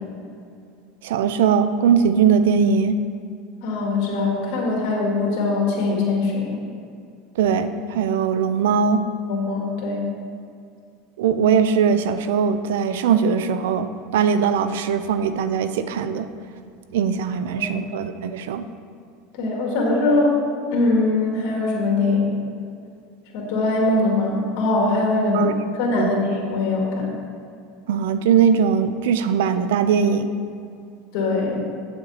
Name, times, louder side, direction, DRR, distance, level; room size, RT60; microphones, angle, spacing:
voice 1, 1.0-3.0 7.4-9.0 11.2-16.3 16.9-18.6 25.3-25.6 26.0-26.2 27.9-30.3, right 7 dB, 85° right, 11 dB, 0.5 m, -20 dB
voice 2, 3.6-6.6 9.3-10.0 17.5-17.8 19.3-20.4 20.7-22.4 23.3-25.5 25.8-27.1 31.1-31.6, left 3 dB, 65° left, -1 dB, 2.2 m, -22 dB
8.7 x 6.8 x 4.1 m, 2.3 s
supercardioid pair, 125°, 0 cm